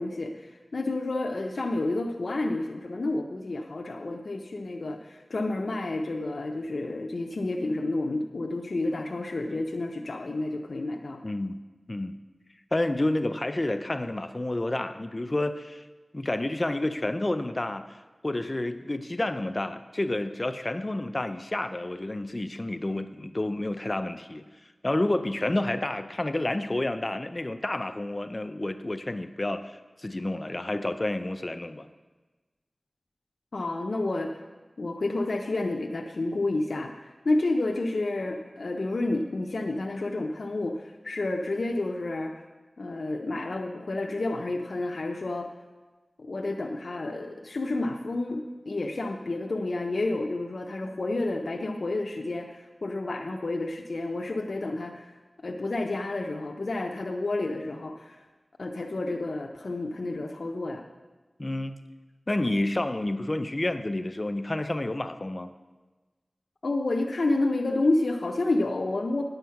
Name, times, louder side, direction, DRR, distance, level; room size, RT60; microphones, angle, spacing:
voice 1, 0.0-11.2 33.5-34.3 34.8-42.3 42.8-45.5 46.2-55.1 55.4-58.2 58.6-60.8 66.6-69.2, left 2 dB, 85° left, 2 dB, 0.6 m, -30 dB
voice 2, 11.2-11.6 11.9-12.1 12.7-15.9 16.1-17.8 18.2-24.4 24.8-31.9 61.4-61.8 62.3-65.5, left 1 dB, 35° left, 10 dB, 0.4 m, -29 dB
10.0 x 7.9 x 5.8 m, 1.2 s
wide cardioid pair, 60°, 0 cm